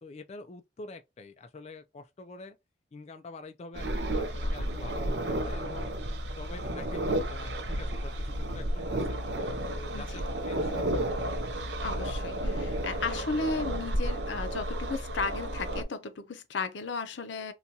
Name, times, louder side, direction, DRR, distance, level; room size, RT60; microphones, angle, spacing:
voice 1, 0.0-2.6 2.9-6.0 6.4-9.2 9.7-11.2, left 3 dB, 35° left, 0.4 m, -46 dB
sound 1, 3.7-15.8, right 1 dB, 65° right, 0.6 m, -32 dB
voice 2, 11.8-17.5, left 3 dB, 85° left, 0.6 m, -34 dB
3.9 x 2.3 x 2.7 m
head